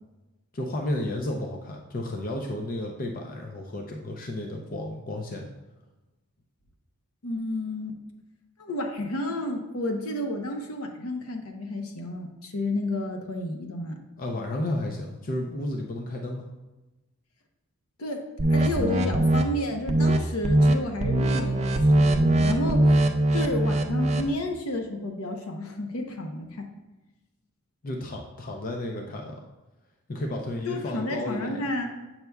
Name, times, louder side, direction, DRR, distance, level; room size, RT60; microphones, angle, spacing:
voice 1, 0.5-5.5 14.2-16.4 27.8-29.4 30.1-31.7, left 1 dB, 40° left, 1 dB, 0.5 m, -32 dB
voice 2, 7.2-7.9 8.6-14.0 18.0-18.2 18.5-26.7 30.6-31.9, left 1 dB, 70° left, 4 dB, 0.8 m, -31 dB
sound 1, 18.4-19.4 19.9-20.2 20.4-20.7 21.0-24.3, right 1 dB, 30° right, 0.4 m, -21 dB
7.9 x 5.8 x 2.3 m, 1.1 s
head